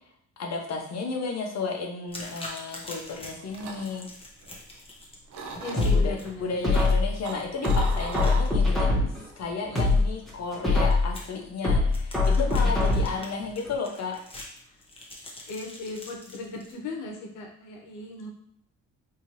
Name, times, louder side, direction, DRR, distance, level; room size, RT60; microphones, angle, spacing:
voice 1, 0.4-4.1 5.7-9.1 9.4-14.2, left 4 dB, 60° left, 1 dB, 1.1 m, -33 dB
sound 1, 2.1-16.7, left 1 dB, 20° left, 1.2 m, -46 dB
sound 2, 3.1-5.0 5.3-6.1 6.6-8.9 9.2-9.5, right 4 dB, 70° right, 0.8 m, -38 dB
voice 2, 5.6-6.5 12.2-12.4 13.1-13.2 15.5-18.3, left 2 dB, 90° left, 1 dB, 1.1 m, -37 dB
sound 3, 5.8-7.2 7.6-9.3 9.6-11.2 11.6-13.3 13.6-13.7, left 3 dB, ahead, 1.4 m, -23 dB
4.5 x 2.9 x 3.1 m, 0.70 s
cardioid pair, 90°, 30 cm